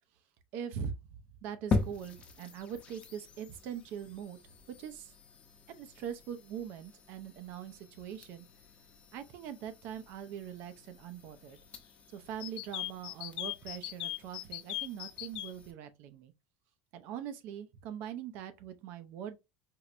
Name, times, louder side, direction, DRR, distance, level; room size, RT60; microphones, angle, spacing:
voice 1, 0.5-4.4 4.8-5.1 5.7-8.5 9.1-11.6 12.1-16.3 16.9-19.4, right 8 dB, 55° right, 0.6 m, -42 dB
sound 1, 1.7-15.7, left 4 dB, 30° left, 0.6 m, -42 dB
sound 2, 12.4-15.5, left 16 dB, 80° left, 0.4 m, -38 dB
4.4 x 2.1 x 2.5 m
supercardioid pair, 145°, 4 cm